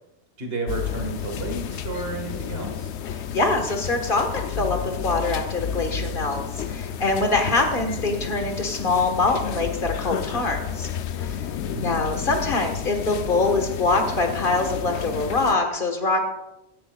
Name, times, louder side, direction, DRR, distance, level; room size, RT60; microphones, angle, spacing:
voice 1, 0.4-2.9 11.7-12.0, right 3 dB, 60° right, 3 dB, 2.0 m, -32 dB
sound 1, 0.7-15.6, left 8 dB, 75° left, 0.8 m, -31 dB
voice 2, 3.3-10.9 11.2-11.5 11.8-16.2, left 3 dB, 50° left, 4 dB, 1.6 m, -24 dB
14.0 x 10.0 x 2.4 m, 0.89 s
omnidirectional pair, 1.1 m